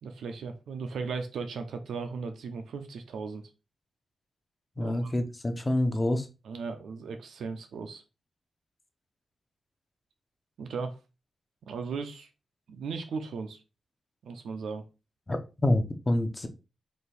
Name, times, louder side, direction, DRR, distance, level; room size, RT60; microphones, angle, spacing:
voice 1, 0.0-3.4 4.8-5.1 6.4-8.0 10.6-11.0 11.6-12.3 12.7-13.6 14.2-14.9, right 5 dB, 85° right, 6 dB, 0.5 m, -37 dB
voice 2, 4.8-6.3 15.3-16.5, left 1 dB, 15° left, 7 dB, 0.5 m, -27 dB
4.2 x 2.6 x 3.3 m, 0.30 s
wide cardioid pair, 170°, 0 cm